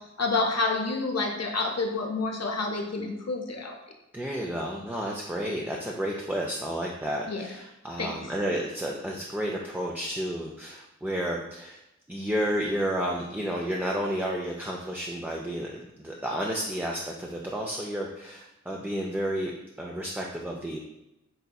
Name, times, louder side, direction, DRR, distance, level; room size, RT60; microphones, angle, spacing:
voice 1, 0.2-3.7 7.3-7.5 8.0-8.1, left 3 dB, 60° left, 2 dB, 0.6 m, -28 dB
voice 2, 4.1-11.8 12.1-19.5 19.8-20.8, equal, 5° right, -2 dB, 0.3 m, -31 dB
4.1 x 2.6 x 2.2 m, 0.92 s
wide cardioid pair, 40°, 29 cm